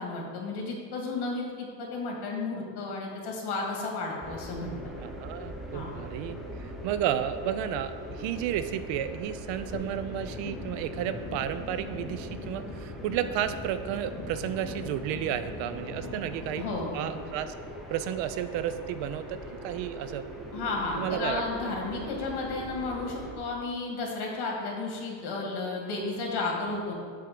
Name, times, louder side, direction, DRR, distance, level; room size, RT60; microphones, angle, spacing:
voice 1, 0.0-4.7 5.7-5.9 16.6-17.1 20.5-26.9, left 3 dB, 50° left, -1 dB, 1.9 m, -33 dB
sound 1, 4.2-23.4, equal, ahead, 0.7 m, -41 dB
voice 2, 5.0-16.6 16.9-17.5 17.9-20.3 21.0-21.4, right 10 dB, 65° right, 11 dB, 0.5 m, -32 dB
sound 2, 9.7-16.7, left 4 dB, 35° left, 0.8 m, -42 dB
7.6 x 3.6 x 6.5 m, 2.1 s
cardioid pair, 145°, 49 cm